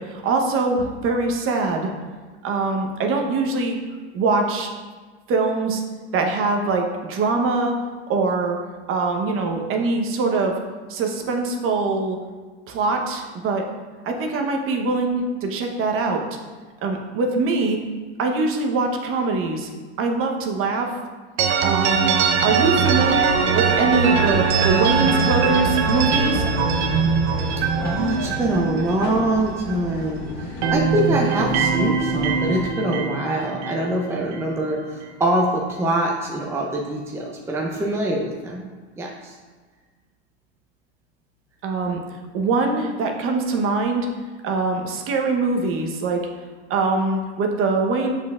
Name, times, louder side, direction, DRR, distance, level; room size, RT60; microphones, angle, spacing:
voice 1, 0.0-1.9 2.4-3.8 4.1-4.7 5.3-5.8 6.1-7.8 8.1-8.6 8.9-10.6 10.9-12.2 12.7-13.7 14.0-16.2 16.8-17.8 18.2-19.7 20.0-20.9 21.6-26.5 41.6-42.0 42.3-44.1 44.4-46.3 46.7-48.1, right 3 dB, 40° right, 3 dB, 1.0 m, -23 dB
sound 1, 21.4-30.1 30.4-34.5, right 5 dB, 65° right, 0.9 m, -22 dB
sound 2, 22.8-32.7, left 2 dB, 55° left, 1.6 m, -34 dB
voice 2, 27.8-38.7 39.0-39.4, right 1 dB, 10° right, -1 dB, 0.6 m, -24 dB
7.1 x 6.1 x 2.4 m, 1.4 s
hypercardioid pair, 110°, 35 cm